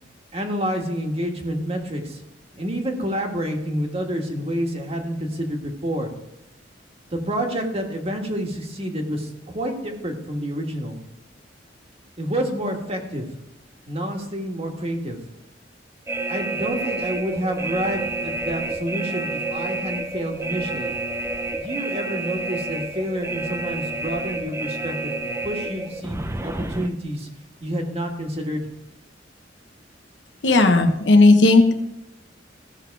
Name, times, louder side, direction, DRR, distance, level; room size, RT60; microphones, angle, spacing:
voice 1, 0.3-2.2 2.5-6.1 7.1-11.0 12.2-13.2 13.9-15.2 16.3-20.9 21.6-27.3 27.6-28.7, equal, 35° right, 2 dB, 1.7 m, -28 dB
sound 1, 16.1-26.9, right 2 dB, 15° right, 0.6 m, -29 dB
voice 2, 30.4-31.7, left 2 dB, 70° left, 5 dB, 1.1 m, -14 dB
15.5 x 6.2 x 4.7 m, 0.88 s
head